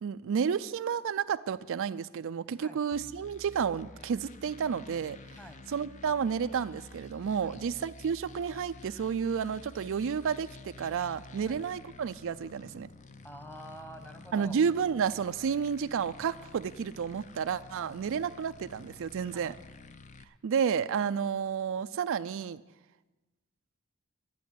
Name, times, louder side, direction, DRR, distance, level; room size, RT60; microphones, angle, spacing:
voice 1, 0.0-5.2 5.7-12.9 14.3-19.5 20.4-22.6, right 7 dB, 65° right, 12 dB, 0.4 m, -31 dB
sound 1, 2.9-20.2, left 3 dB, 35° left, 0.6 m, -51 dB
voice 2, 13.2-14.6 19.3-19.6, equal, 10° left, 7 dB, 1.1 m, -47 dB
11.5 x 8.2 x 9.5 m, 1.1 s
head